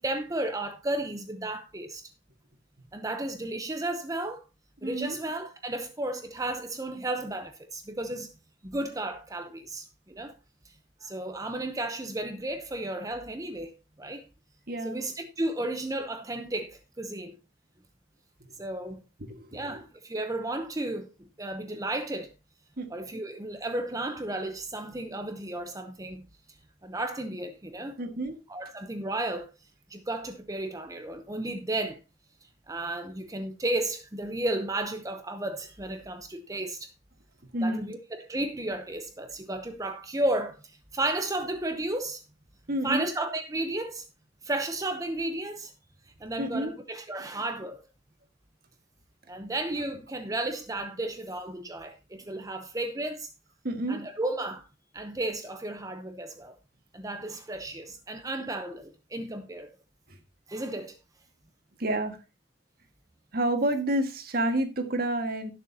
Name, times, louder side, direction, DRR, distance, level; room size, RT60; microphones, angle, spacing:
voice 1, 0.0-2.1 2.9-4.4 4.8-8.3 8.6-10.3 10.6-10.7 11.0-13.7 14.0-14.2 14.8-17.4 18.6-19.0 19.5-21.1 21.4-22.3 22.9-26.2 26.8-28.0 28.5-29.5 29.9-32.0 32.7-36.9 37.6-42.2 42.8-44.0 44.4-45.7 46.2-47.8 49.3-53.3 53.9-54.6 54.9-56.6 56.9-59.7 60.5-61.0, right 1 dB, 20° right, 0.8 m, -33 dB
voice 2, 4.8-5.2 14.7-15.0 18.4-18.5 19.3-19.8 22.8-22.9 28.0-28.4 37.5-37.9 42.7-43.1 46.4-46.7 53.6-54.0 60.1-60.2 61.8-62.2 63.3-65.5, right 1 dB, 55° right, 1.8 m, -29 dB
18.0 x 6.8 x 2.8 m
head